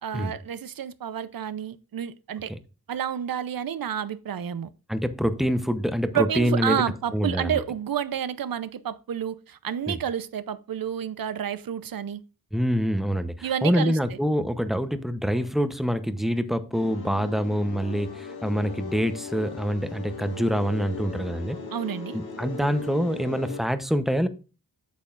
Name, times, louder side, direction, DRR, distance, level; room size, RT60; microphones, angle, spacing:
voice 1, 0.0-2.5 2.9-4.7 6.1-12.2 13.4-14.2 21.7-22.2, right 9 dB, 70° right, 0.7 m, -30 dB
voice 2, 4.9-6.8 7.1-7.6 9.9-10.0 12.5-21.6 22.1-24.3, equal, ahead, 0.8 m, -26 dB
sound 1, 16.7-23.6, left 3 dB, 85° left, 1.8 m, -38 dB
8.6 x 7.7 x 2.5 m
wide cardioid pair, 115°, 36 cm